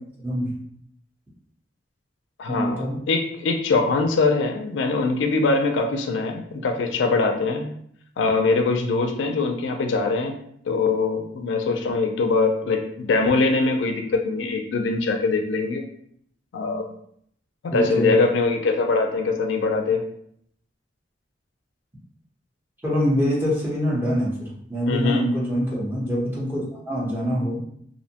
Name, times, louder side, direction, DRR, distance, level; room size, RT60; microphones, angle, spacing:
voice 1, 0.2-0.5 2.5-3.0 17.7-18.1 22.8-27.6, equal, 10° right, -6 dB, 0.8 m, -24 dB
voice 2, 2.4-7.7 8.2-10.3 10.7-15.8 16.5-16.9 17.6-20.0 24.9-25.2, left 3 dB, 80° left, 5 dB, 0.4 m, -22 dB
2.6 x 2.1 x 2.7 m, 0.67 s
head